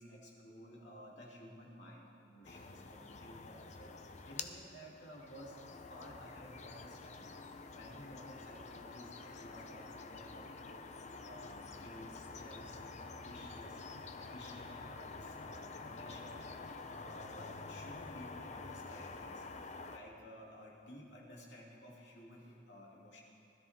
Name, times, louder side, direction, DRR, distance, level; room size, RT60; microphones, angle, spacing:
voice 1, 0.0-10.9 11.2-13.8 14.2-23.2, equal, 80° left, -3 dB, 2.9 m, -54 dB
sound 1, 2.4-20.0, left 3 dB, 40° left, 0.7 m, -48 dB
20.0 x 13.0 x 3.7 m, 2.5 s
head